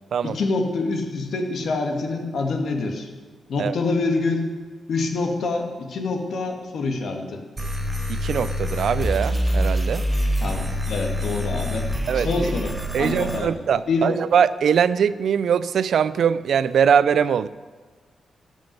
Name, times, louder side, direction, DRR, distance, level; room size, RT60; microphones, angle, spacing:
voice 1, 0.2-3.1 3.5-4.5 4.9-7.4 10.4-11.9 12.1-13.5 13.9-14.2, left 3 dB, 70° left, 3 dB, 2.1 m, -26 dB
sound 1, 7.6-13.4, equal, 15° right, 4.0 m, -25 dB
voice 2, 8.1-10.0 12.1-12.5 12.9-17.5, right 7 dB, 70° right, 16 dB, 0.5 m, -21 dB
14.5 x 6.3 x 9.8 m, 1.4 s
cardioid pair, 75°, 0 cm